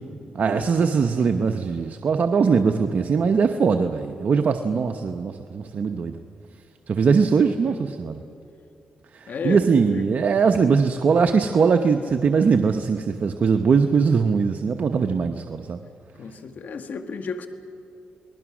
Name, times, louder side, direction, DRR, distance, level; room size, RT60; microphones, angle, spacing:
voice 1, 0.3-6.1 6.9-8.2 9.4-15.8, right 5 dB, 60° right, 6 dB, 0.9 m, -21 dB
voice 2, 9.3-9.6 9.9-10.0 16.2-17.5, left 5 dB, 70° left, 7 dB, 1.6 m, -33 dB
28.5 x 20.0 x 6.2 m, 2.7 s
cardioid pair, 75°, 3 cm